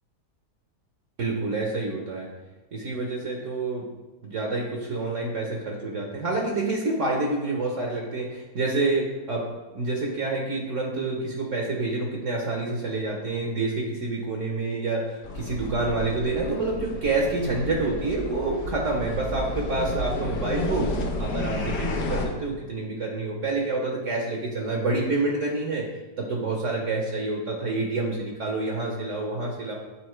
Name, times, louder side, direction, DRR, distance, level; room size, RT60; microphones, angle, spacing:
voice 1, 1.2-2.3 2.7-3.8 4.2-9.5 9.7-20.9 21.2-25.9 26.2-29.7, right 3 dB, 55° right, -1 dB, 1.1 m, -28 dB
sound 1, 15.2-22.3, left 1 dB, 80° left, 1.5 m, -31 dB
8.7 x 4.1 x 3.1 m, 1.2 s
omnidirectional pair, 1.8 m